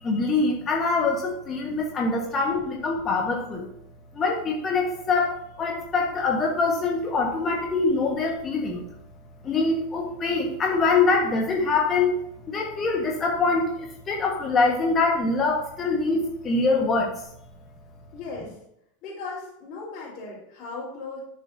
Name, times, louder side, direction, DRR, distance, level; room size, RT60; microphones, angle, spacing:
voice 1, 0.0-3.7 4.1-8.8 9.4-12.1 12.5-17.2, left 3 dB, 30° left, 0 dB, 1.4 m, -24 dB
voice 2, 18.1-18.6 19.0-21.2, left 3 dB, 45° left, -9 dB, 3.8 m, -37 dB
11.0 x 7.2 x 2.8 m, 0.76 s
figure-of-eight pair, 80°, 0 cm